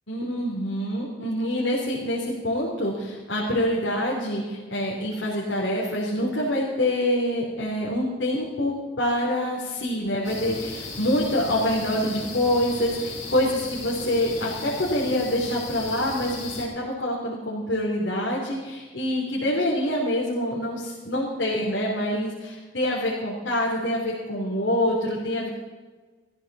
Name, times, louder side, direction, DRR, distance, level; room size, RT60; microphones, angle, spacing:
voice 1, 0.1-25.5, left 1 dB, 75° left, -4 dB, 3.2 m, -26 dB
sound 1, 10.2-16.7, left 3 dB, 40° left, 3.6 m, -36 dB
18.0 x 14.5 x 4.2 m, 1.4 s
head